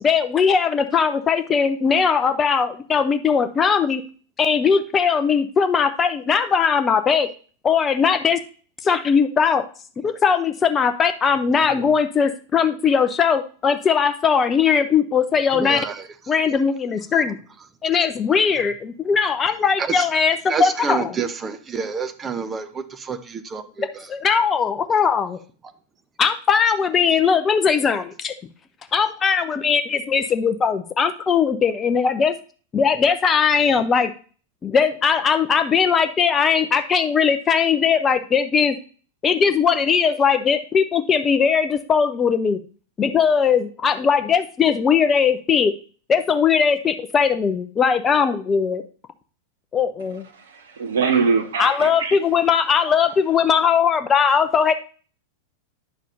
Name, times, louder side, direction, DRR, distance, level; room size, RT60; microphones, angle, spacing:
voice 1, 0.0-4.0 4.4-7.3 7.6-8.4 8.8-9.6 10.0-15.8 16.3-17.4 17.8-21.1 23.8-25.4 26.2-28.3 28.9-32.4 32.7-34.1 34.6-38.8 39.2-42.6 43.0-45.7 46.1-48.8 49.7-50.3 51.6-54.7, left 6 dB, 20° left, 0.6 m, -19 dB
voice 2, 15.5-16.3 19.8-20.1 20.5-24.1, right 5 dB, 20° right, 0.8 m, -29 dB
voice 3, 50.3-52.2 52.8-52.9, right 5 dB, 60° right, 1.4 m, -23 dB
9.7 x 6.3 x 2.7 m
figure-of-eight pair, 90°, 0 cm